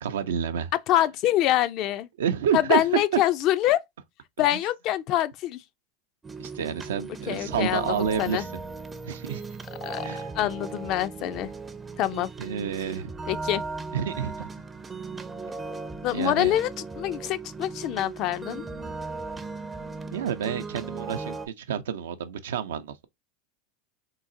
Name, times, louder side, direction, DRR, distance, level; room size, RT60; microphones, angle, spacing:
voice 1, 0.0-0.7 2.2-2.8 4.5-4.6 6.4-8.5 9.0-9.4 10.0-10.3 12.4-13.1 13.9-14.6 16.1-16.5 20.1-23.1, right 8 dB, 80° right, 0.4 m, -29 dB
voice 2, 0.9-2.1 2.5-3.8 4.4-5.6 7.3-8.5 9.8-10.1 10.3-11.5 12.0-12.3 13.3-13.6 16.0-18.6, left 13 dB, 50° left, 0.3 m, -25 dB
sound 1, 6.2-21.5, right 3 dB, 20° right, 0.4 m, -37 dB
3.8 x 2.0 x 2.5 m
hypercardioid pair, 100°, 0 cm